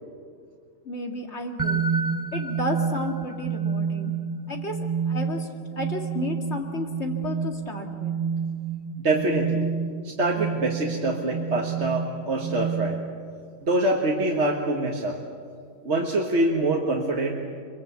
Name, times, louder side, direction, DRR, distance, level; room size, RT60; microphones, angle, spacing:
voice 1, 0.8-1.9 2.3-4.1 4.5-4.8 5.1-5.5 5.8-8.2, left 2 dB, 45° left, 3 dB, 2.5 m, -32 dB
sound 1, 1.6-13.3, right 6 dB, 15° right, 0.7 m, -29 dB
voice 2, 9.0-9.7 10.0-13.0 13.6-15.2 15.8-17.3, right 2 dB, 50° right, 0 dB, 1.8 m, -25 dB
24.0 x 23.0 x 8.2 m, 2.2 s
omnidirectional pair, 1.6 m